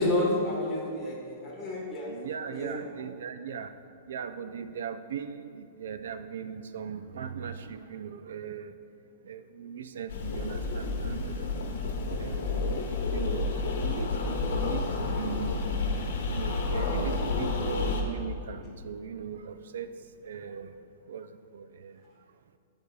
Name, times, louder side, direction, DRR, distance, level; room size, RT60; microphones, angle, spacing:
voice 1, 0.0-2.1 2.5-2.8 18.6-18.7, left 1 dB, 10° left, -6 dB, 1.4 m, -29 dB
voice 2, 2.1-3.7 4.1-8.7 9.3-11.4 12.2-12.6 13.1-15.5 16.3-19.9 20.2-20.7 21.1-21.3 21.5-21.9, right 7 dB, 75° right, 11 dB, 0.4 m, -39 dB
sound 1, 10.1-18.0, left 3 dB, 65° left, 1.1 m, -30 dB
13.5 x 5.2 x 2.3 m, 2.5 s
supercardioid pair, 175°, 0 cm